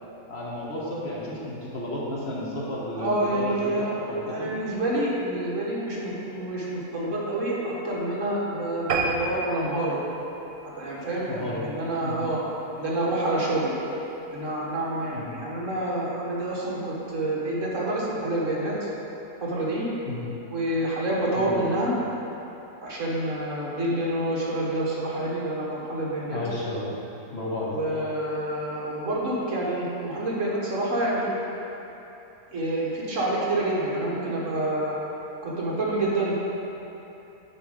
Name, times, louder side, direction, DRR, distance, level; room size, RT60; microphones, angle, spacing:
voice 1, 0.3-4.5 11.3-11.6 12.0-12.2 15.1-15.3 20.1-20.3 21.3-21.7 26.3-26.9 27.3-27.8, left 1 dB, 45° left, -5 dB, 1.4 m, -32 dB
voice 2, 3.0-3.9 4.2-10.0 10.6-12.4 12.7-13.8 14.3-18.8 19.4-19.9 20.5-21.9 22.8-26.4 27.7-31.3 32.5-35.0 35.4-36.3, right 1 dB, 55° right, -5 dB, 1.7 m, -28 dB
sound 1, 8.9-11.6 12.1-12.3 12.8-12.9 13.2-13.3 13.5-13.6, right 3 dB, 90° right, 1.4 m, -31 dB
8.2 x 5.0 x 5.1 m, 3.0 s
omnidirectional pair, 1.7 m